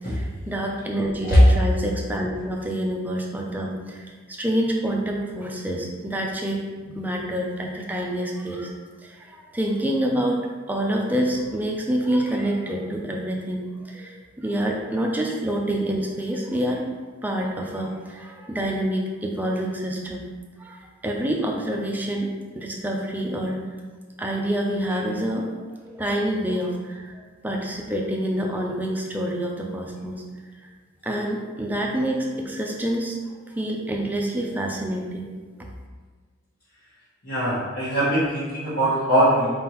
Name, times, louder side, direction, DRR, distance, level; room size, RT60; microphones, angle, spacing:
voice 1, 0.0-8.7 9.0-10.4 10.7-16.9 17.2-20.3 20.6-22.3 22.6-23.6 24.2-25.5 25.8-30.2 30.6-30.7 31.0-33.2 33.5-35.3, right 1 dB, 10° right, -1 dB, 0.4 m, -27 dB
voice 2, 37.2-39.5, equal, 55° left, -12 dB, 1.4 m, -21 dB
4.6 x 3.5 x 3.0 m, 1.4 s
head